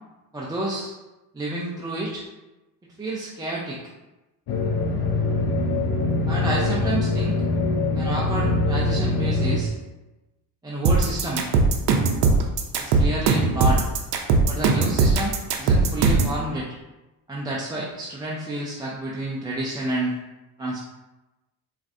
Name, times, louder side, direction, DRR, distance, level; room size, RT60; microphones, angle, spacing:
voice 1, 0.3-0.9 1.3-2.2 3.0-3.8 6.3-7.4 7.9-9.7 10.6-11.5 12.8-13.9 14.5-16.7 17.3-20.1 20.6-20.8, right 1 dB, 10° right, -5 dB, 0.3 m, -29 dB
sound 1, 4.5-9.6, left 2 dB, 50° left, 0.6 m, -23 dB
sound 2, 10.8-16.4, right 4 dB, 60° right, 0.6 m, -19 dB
4.0 x 2.4 x 2.6 m, 1.0 s
cardioid pair, 95°, 44 cm